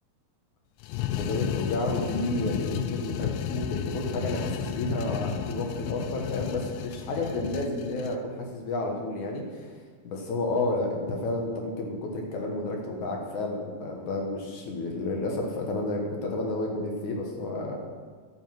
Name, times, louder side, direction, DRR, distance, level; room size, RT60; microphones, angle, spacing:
sound 1, 0.8-8.2, left 10 dB, 80° left, 2.0 m, -33 dB
voice 1, 1.2-9.7 10.0-17.8, left 2 dB, 60° left, 0 dB, 2.4 m, -31 dB
12.0 x 7.9 x 6.0 m, 1.5 s
omnidirectional pair, 4.4 m